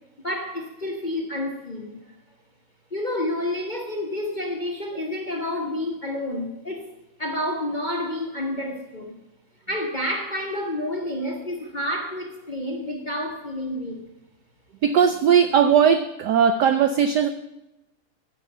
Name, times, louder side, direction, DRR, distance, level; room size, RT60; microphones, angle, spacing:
voice 1, 0.2-2.2 2.9-6.9 7.2-9.2 9.7-14.0, left 1 dB, 35° left, 1 dB, 0.8 m, -29 dB
voice 2, 14.8-17.3, right 7 dB, 75° right, 10 dB, 0.9 m, -18 dB
11.0 x 6.4 x 7.8 m, 0.93 s
omnidirectional pair, 2.4 m